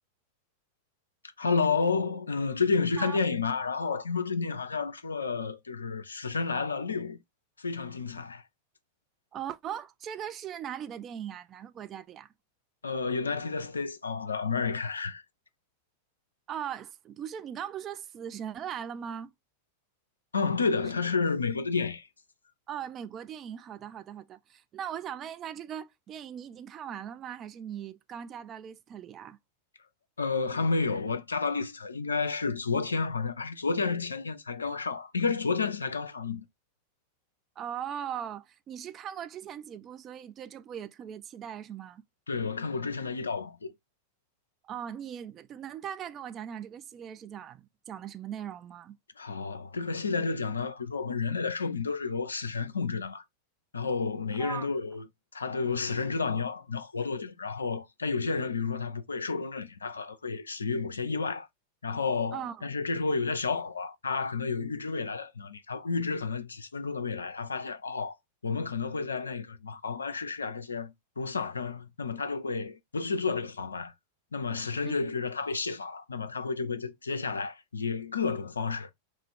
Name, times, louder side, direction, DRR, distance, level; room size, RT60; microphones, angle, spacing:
voice 1, 1.4-7.2 7.6-8.4 12.8-15.2 20.3-22.1 30.2-36.4 42.3-43.7 49.2-53.2 53.7-55.1 55.3-61.5 61.8-68.2 68.4-73.9 74.3-78.9, left 4 dB, 75° left, 0.4 m, -31 dB
voice 2, 9.3-12.3 16.5-19.3 22.7-29.4 37.6-42.0 44.6-49.0 54.4-54.7 62.3-62.7 74.8-74.9, right 9 dB, 30° right, 0.3 m, -39 dB
2.4 x 2.3 x 3.7 m
figure-of-eight pair, 90°, 0 cm